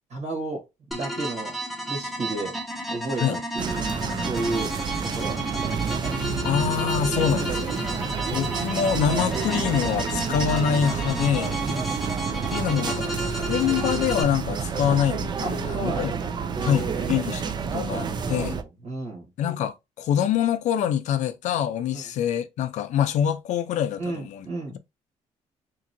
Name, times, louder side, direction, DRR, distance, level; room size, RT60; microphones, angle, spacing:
voice 1, 0.1-1.6 1.9-2.5 2.9-4.8 5.0-5.8 7.2-7.5 7.9-8.3 11.6-12.0 15.4-17.2 17.9-19.3 21.9-22.1 24.0-24.8, right 3 dB, 65° right, 1.5 m, -33 dB
sound 1, 0.9-14.2, right 1 dB, ahead, 0.7 m, -32 dB
sound 2, 3.6-18.6, right 6 dB, 35° right, 0.4 m, -29 dB
voice 2, 6.4-7.5 8.3-11.6 12.5-13.1 13.5-16.1 16.6-18.6 19.4-24.5, left 9 dB, 75° left, 0.5 m, -25 dB
2.9 x 2.7 x 2.6 m
cardioid pair, 115°, 13 cm